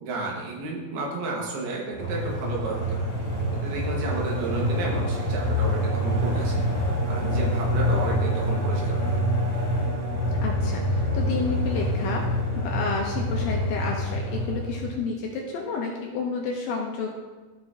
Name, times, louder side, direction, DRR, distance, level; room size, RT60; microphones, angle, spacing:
voice 1, 0.0-3.2 3.5-6.7 7.0-9.2, right 3 dB, 75° right, -2 dB, 3.2 m, -32 dB
sound 1, 1.9-15.0, equal, 10° right, 1.5 m, -26 dB
voice 2, 10.4-17.1, left 4 dB, 75° left, -1 dB, 2.3 m, -30 dB
13.5 x 5.9 x 2.6 m, 1.3 s
omnidirectional pair, 4.7 m